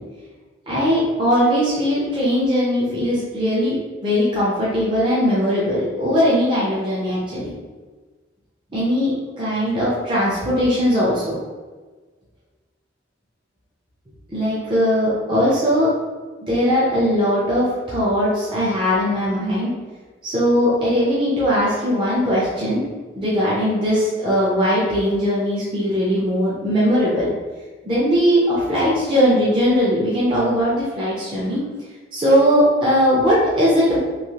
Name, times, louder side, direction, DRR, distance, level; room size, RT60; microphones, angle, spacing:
voice 1, 0.7-3.8 4.0-7.5 8.7-11.3 14.3-15.9 16.4-19.7 20.2-22.8 23.2-27.3 27.8-31.6 32.1-34.0, equal, 25° right, -8 dB, 0.6 m, -19 dB
3.1 x 2.7 x 2.8 m, 1.3 s
head